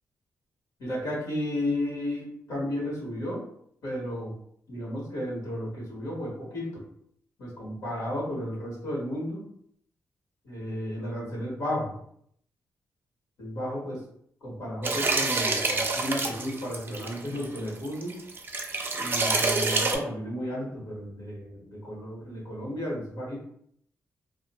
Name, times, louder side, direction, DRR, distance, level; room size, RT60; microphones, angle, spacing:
voice 1, 0.8-3.4 3.8-4.3 4.7-6.8 7.4-9.4 10.4-11.9 13.4-14.0 14.4-18.1 18.9-23.4, left 1 dB, 80° left, -5 dB, 1.3 m, -33 dB
sound 1, 14.8-20.0, right 3 dB, 35° right, 0.4 m, -27 dB
2.4 x 2.1 x 2.9 m, 0.68 s
cardioid pair, 85°, 6 cm